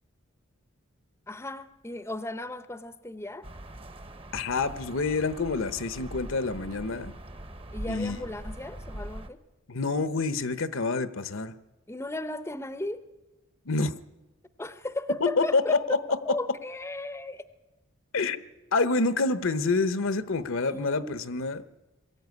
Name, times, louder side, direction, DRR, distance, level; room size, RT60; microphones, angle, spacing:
voice 1, 1.3-3.5 7.7-9.4 11.9-13.1 14.6-16.0 16.3-17.4 20.6-21.2, left 2 dB, 10° left, 12 dB, 0.7 m, -35 dB
sound 1, 3.4-9.3, right 1 dB, 25° right, 0.9 m, -42 dB
voice 2, 4.3-7.1 7.9-8.2 9.7-11.5 13.7-13.9 15.2-16.0 16.3-16.4 18.1-18.4 18.7-21.6, left 3 dB, 60° left, 14 dB, 0.9 m, -27 dB
21.5 x 14.0 x 9.5 m, 1.1 s
head